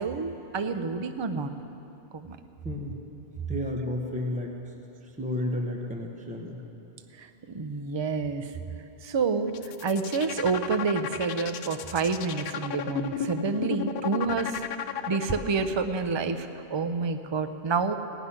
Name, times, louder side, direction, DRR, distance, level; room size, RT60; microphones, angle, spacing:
voice 1, 0.0-1.5 2.1-2.4 7.2-8.6 9.0-9.5 9.8-14.6 15.1-17.9, right 4 dB, 35° right, 8 dB, 0.5 m, -28 dB
voice 2, 2.6-3.0 3.5-4.5 5.0-6.6, left 1 dB, 5° right, 1 dB, 1.0 m, -32 dB
sound 1, 9.5-15.7, left 9 dB, 65° left, 0.7 m, -33 dB
17.0 x 6.1 x 10.0 m, 2.9 s
omnidirectional pair, 1.1 m